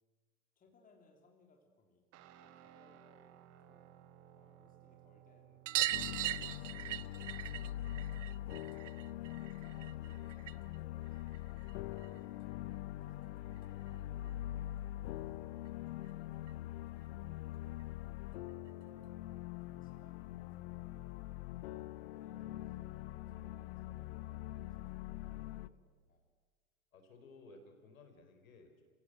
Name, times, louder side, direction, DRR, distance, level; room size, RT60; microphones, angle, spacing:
voice 1, 0.5-2.0 2.4-3.9 4.3-5.6 6.0-12.4 13.0-14.7 15.1-17.7 18.2-19.3 19.6-22.8 23.0-26.3, left 3 dB, 20° left, 2 dB, 3.3 m, -69 dB
Guitar, 2.1-10.3, right 11 dB, 35° right, 1.8 m, -61 dB
sound 1, 5.7-10.8 11.1-12.2 13.6-13.7 13.9-14.0 14.3-14.4 15.7-15.8 16.0-16.1 16.5-16.6 17.8-17.9 18.7-18.8, right 15 dB, 55° right, 0.8 m, -40 dB
sound 2, 5.9-25.7, left 14 dB, 45° left, 0.8 m, -43 dB
voice 2, 26.9-28.8, left 3 dB, 65° left, 5 dB, 4.4 m, -58 dB
28.0 x 16.5 x 7.9 m, 1.5 s
hypercardioid pair, 105°, 43 cm